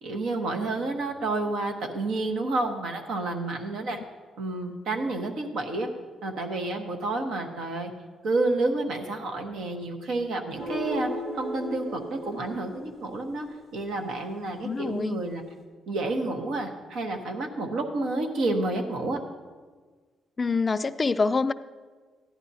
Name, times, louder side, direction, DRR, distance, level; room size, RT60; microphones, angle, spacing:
voice 1, 0.0-4.0 4.4-5.9 6.2-7.9 8.2-11.1 11.3-13.5 13.7-15.4 15.9-19.2, right 2 dB, 75° right, 4 dB, 1.2 m, -29 dB
sound 1, 10.6-13.9, equal, 50° right, 2.2 m, -36 dB
voice 2, 14.6-15.2 20.4-21.5, left 4 dB, 30° left, 12 dB, 0.4 m, -25 dB
14.5 x 10.5 x 2.8 m, 1.4 s
cardioid pair, 90°, 0 cm